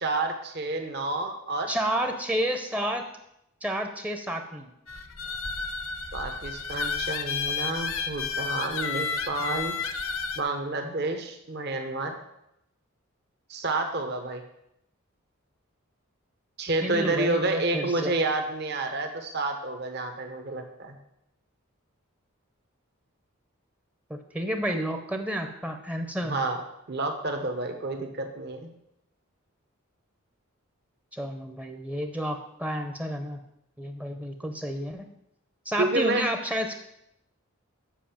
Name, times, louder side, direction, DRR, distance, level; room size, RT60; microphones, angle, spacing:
voice 1, 0.0-1.7 6.1-9.8 10.4-12.2 13.5-14.4 16.6-21.0 26.2-26.6 26.9-28.7 35.8-36.3, right 2 dB, 50° right, 5 dB, 0.9 m, -29 dB
voice 2, 1.7-3.0 3.6-4.7 16.8-18.1 24.1-26.3 31.1-33.4 33.8-35.0 35.7-36.7, equal, 5° right, 5 dB, 0.6 m, -30 dB
sound 1, 4.9-10.4, left 5 dB, 70° left, 0.8 m, -31 dB
7.4 x 5.4 x 7.1 m, 0.80 s
head